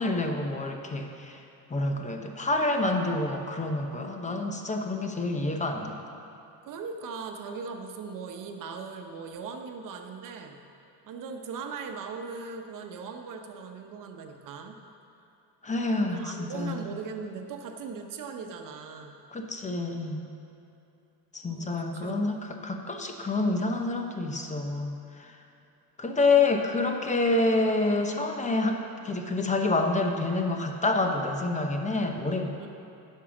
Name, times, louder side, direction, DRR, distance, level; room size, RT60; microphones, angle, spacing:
voice 1, 0.0-1.4 1.7-6.0 15.6-16.8 19.3-20.2 21.3-25.3 26.0-28.8 29.0-32.7, left 2 dB, 20° left, 4 dB, 0.8 m, -28 dB
voice 2, 6.6-10.6 11.0-14.8 16.1-19.2 21.5-22.4 32.6-32.7, right 5 dB, 60° right, 4 dB, 1.0 m, -39 dB
9.9 x 5.6 x 7.1 m, 2.8 s
cardioid pair, 125°, 37 cm